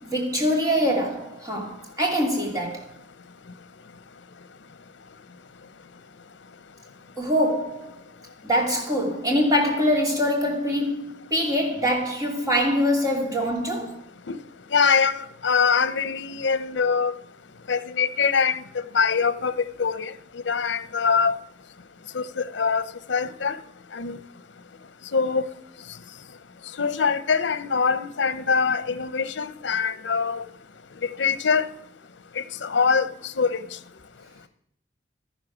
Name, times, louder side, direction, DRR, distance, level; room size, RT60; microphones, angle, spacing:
voice 1, 0.0-2.8 7.2-7.9 8.4-14.0, equal, 20° right, 2.7 m, -24 dB
voice 2, 14.7-17.1 17.7-18.6 18.9-21.3 22.1-23.6 23.9-24.2 25.1-25.4 26.8-30.4 31.2-31.6 32.4-33.1 33.4-33.6, left 5 dB, 80° left, 0.7 m, -23 dB
13.0 x 10.0 x 6.1 m
head